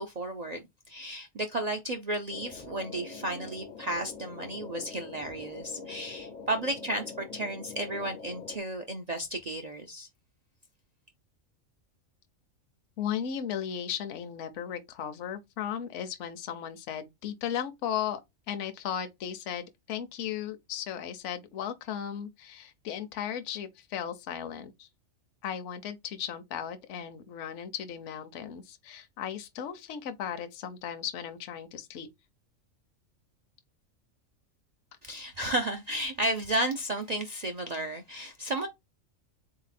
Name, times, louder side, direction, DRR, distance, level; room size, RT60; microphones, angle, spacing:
voice 1, 0.0-10.1 35.0-38.7, right 1 dB, 60° right, 0.4 m, -33 dB
sound 1, 2.3-8.6, left 5 dB, 50° left, 0.5 m, -44 dB
voice 2, 13.0-18.2 18.5-24.9 25.4-32.1, left 9 dB, 65° left, 0.9 m, -36 dB
3.9 x 2.8 x 4.1 m
omnidirectional pair, 1.4 m